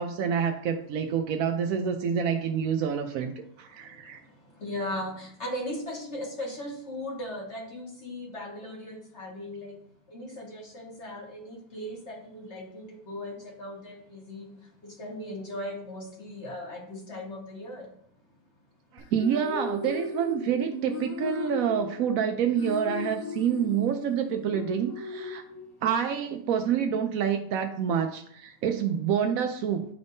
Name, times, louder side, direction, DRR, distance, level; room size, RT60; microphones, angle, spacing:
voice 1, 0.0-4.2 18.9-25.4 25.8-29.9, right 8 dB, 85° right, 6 dB, 0.7 m, -27 dB
voice 2, 4.6-9.7 10.1-14.5 14.8-17.9, left 1 dB, 40° left, -2 dB, 1.7 m, -38 dB
sound 1, 19.0-26.0, left 3 dB, 60° left, 0.9 m, -37 dB
10.0 x 3.5 x 2.6 m, 0.65 s
omnidirectional pair, 2.0 m